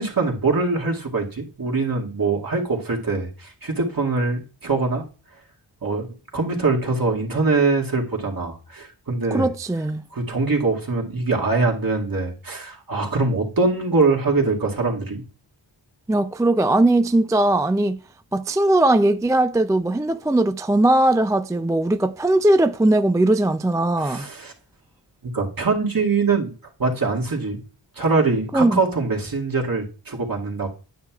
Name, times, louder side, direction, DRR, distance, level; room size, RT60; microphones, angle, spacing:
voice 1, 0.0-5.0 5.8-9.5 10.1-15.2 24.0-24.5 25.2-26.5 26.8-27.6 28.0-30.7, right 3 dB, 45° right, 2.2 m, -23 dB
voice 2, 9.3-10.0 16.1-18.0 18.3-24.3 28.5-28.8, right 1 dB, 10° right, 0.3 m, -19 dB
9.3 x 7.6 x 2.4 m
cardioid pair, 55°, 46 cm